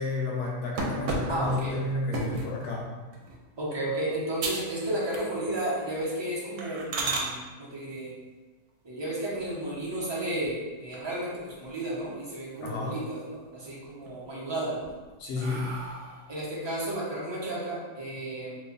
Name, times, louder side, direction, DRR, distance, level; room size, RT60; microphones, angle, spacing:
voice 1, 0.0-2.9 12.6-13.0 15.2-15.7, left 2 dB, 90° left, -2 dB, 1.3 m, -31 dB
sound 1, 0.8-2.6 3.1-3.4 3.9-4.0 4.4-4.8 5.1-5.6 5.9-6.1 6.6-7.3 9.3-10.0 10.4-10.5 10.9-11.0 11.3-12.1 12.5-13.1 13.5-14.1 14.6-16.4, right 3 dB, 85° right, 1.1 m, -34 dB
voice 2, 1.3-1.7 3.6-8.1 8.8-14.9 16.3-18.6, right 1 dB, 25° right, -7 dB, 0.7 m, -33 dB
3.1 x 2.3 x 3.8 m, 1.3 s
omnidirectional pair, 1.6 m